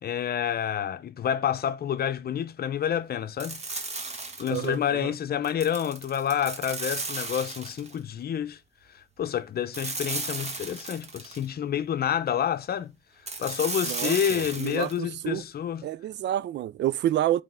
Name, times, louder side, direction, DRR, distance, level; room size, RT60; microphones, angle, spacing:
voice 1, 0.0-3.6 4.4-8.6 8.9-12.9 13.4-15.8, left 9 dB, 50° left, 0.7 m, -28 dB
sound 1, 3.4-4.8 5.4-8.0 9.7-11.5 13.3-15.0, right 3 dB, 35° right, 1.5 m, -35 dB
voice 2, 4.5-5.1 13.9-15.4 15.8-17.4, right 12 dB, 60° right, 0.4 m, -29 dB
9.1 x 3.5 x 3.6 m
cardioid pair, 90°, 20 cm